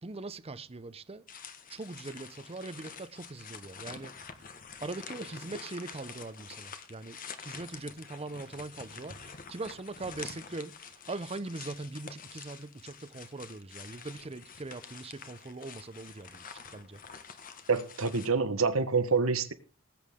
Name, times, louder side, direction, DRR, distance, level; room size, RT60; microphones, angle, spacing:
voice 1, 0.0-1.2 1.7-4.1 4.8-17.0, right 2 dB, 30° right, 0.7 m, -41 dB
sound 1, 1.3-18.3, left 6 dB, 40° left, 1.4 m, -47 dB
voice 2, 17.7-19.5, right 4 dB, 80° right, 1.3 m, -27 dB
19.5 x 8.8 x 3.7 m
head